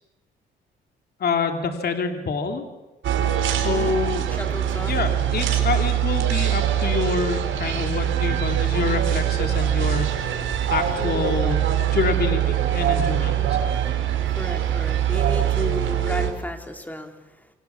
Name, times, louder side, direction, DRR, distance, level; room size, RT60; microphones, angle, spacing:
voice 1, 1.2-2.7 3.6-4.3 4.9-13.6, left 5 dB, 50° left, 5 dB, 3.3 m, -27 dB
sound 1, 3.0-16.3, right 10 dB, 75° right, 4.8 m, -23 dB
voice 2, 3.6-3.9 4.3-4.9 13.3-13.6 14.2-17.5, equal, 10° left, 4 dB, 4.4 m, -33 dB
27.0 x 27.0 x 7.2 m, 1.1 s
cardioid pair, 90°, 20 cm